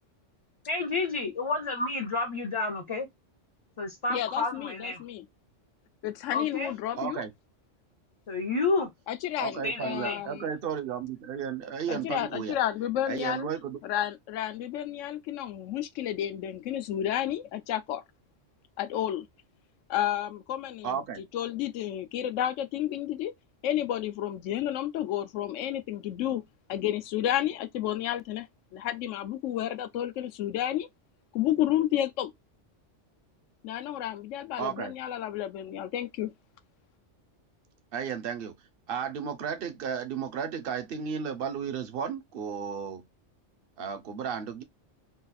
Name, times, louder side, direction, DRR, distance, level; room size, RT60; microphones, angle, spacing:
voice 1, 0.7-3.1 3.8-5.0 6.3-6.7 8.3-8.9 9.6-10.2, left 3 dB, 35° left, 0.5 m, -30 dB
voice 2, 4.1-5.3 6.0-7.2 9.1-10.5 11.9-13.5 13.8-18.0 18.8-19.3 19.9-21.0 21.3-23.3 23.6-26.4 26.7-28.5 28.7-30.9 31.3-32.3 33.6-36.3, left 11 dB, 85° left, 1.0 m, -31 dB
voice 3, 7.0-7.3 9.4-12.6 13.1-13.8 20.8-21.2 34.6-34.9 37.9-38.5 38.9-43.0 43.8-44.6, right 7 dB, 55° right, 0.8 m, -33 dB
3.9 x 2.3 x 4.0 m
omnidirectional pair, 1.2 m